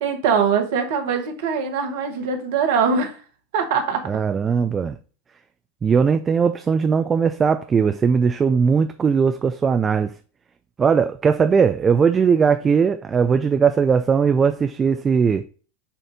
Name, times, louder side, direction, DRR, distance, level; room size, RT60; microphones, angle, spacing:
voice 1, 0.0-3.2 3.5-4.0, right 6 dB, 60° right, 1.2 m, -22 dB
voice 2, 4.1-5.0 5.8-10.1 10.8-15.4, right 6 dB, 25° right, 0.4 m, -19 dB
7.2 x 2.7 x 5.0 m
hypercardioid pair, 90°, 0 cm